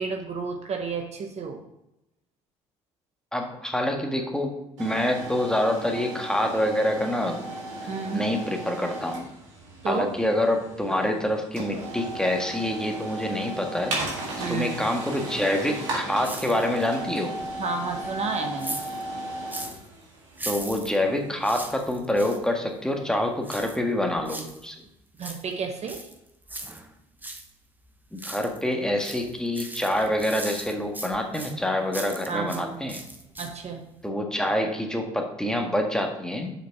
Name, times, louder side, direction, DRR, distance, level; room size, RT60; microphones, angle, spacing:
voice 1, 0.0-1.6 7.9-8.3 9.8-10.1 14.4-14.8 17.6-18.8 25.2-26.1 32.3-32.8 33.4-33.8, right 5 dB, 45° right, 3 dB, 1.2 m, -31 dB
voice 2, 3.3-7.4 8.1-9.3 9.8-14.0 14.5-17.4 20.4-24.7 28.1-33.0 34.0-36.5, left 1 dB, 5° left, 2 dB, 1.7 m, -26 dB
sound 1, 4.8-21.6, right 1 dB, 85° right, 1.8 m, -36 dB
sound 2, 16.2-17.0 17.3-19.9 20.3-22.4 23.4-24.7 25.0-27.5 27.8-28.7 29.0-32.6 32.9-33.7 34.0-34.1, right 2 dB, 10° right, 1.1 m, -39 dB
6.7 x 5.1 x 6.0 m, 0.87 s
hypercardioid pair, 60°, 16 cm